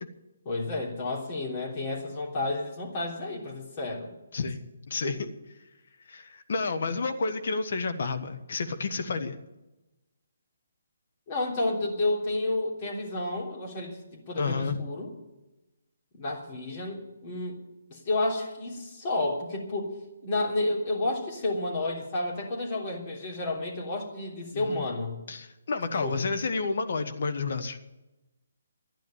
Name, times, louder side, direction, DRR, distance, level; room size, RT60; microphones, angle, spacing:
voice 1, 0.4-4.1 5.0-5.2 11.3-15.1 16.2-17.6 17.9-19.9 20.2-25.2 26.0-26.2, left 2 dB, 35° left, -3 dB, 3.3 m, -31 dB
voice 2, 4.3-5.3 6.1-9.4 14.4-14.8 24.5-24.8 25.3-27.8, left 4 dB, 60° left, 8 dB, 1.6 m, -30 dB
12.5 x 10.5 x 9.1 m, 1.0 s
figure-of-eight pair, 145°, 0 cm